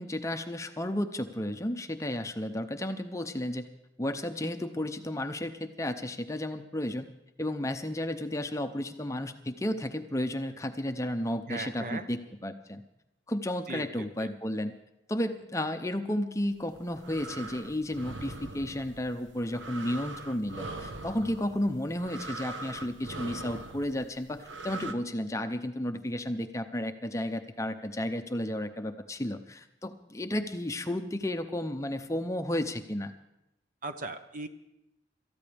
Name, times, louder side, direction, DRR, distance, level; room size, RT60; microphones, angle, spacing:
voice 1, 0.0-3.6 4.0-7.1 7.4-12.8 13.3-14.7 15.1-33.1, left 1 dB, 15° left, 7 dB, 0.6 m, -33 dB
voice 2, 11.5-12.0 13.7-13.8 33.8-34.5, right 3 dB, 45° right, 8 dB, 0.9 m, -37 dB
sound 1, 16.6-24.9, right 2 dB, 85° right, 1.0 m, -42 dB
26.5 x 14.0 x 3.4 m, 0.87 s
head